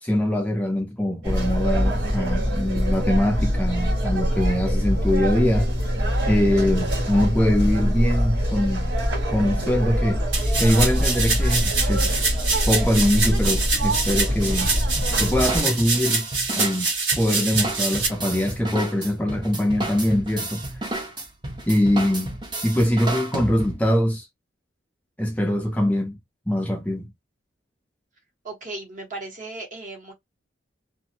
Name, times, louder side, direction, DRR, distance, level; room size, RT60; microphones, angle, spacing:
voice 1, 0.0-5.7 6.3-8.9 9.3-10.2 10.6-12.2 12.7-14.7 15.2-16.3 16.6-20.6 21.7-22.3 22.6-24.3 25.2-26.2 26.5-27.1, left 1 dB, 5° left, 0.4 m, -23 dB
sound 1, 1.2-15.6, equal, 60° right, 1.6 m, -24 dB
sound 2, 10.3-18.1, right 4 dB, 80° right, 1.6 m, -25 dB
sound 3, 15.0-23.9, right 2 dB, 25° right, 0.8 m, -32 dB
voice 2, 28.4-30.1, right 2 dB, 40° right, 1.3 m, -36 dB
2.6 x 2.5 x 2.7 m
head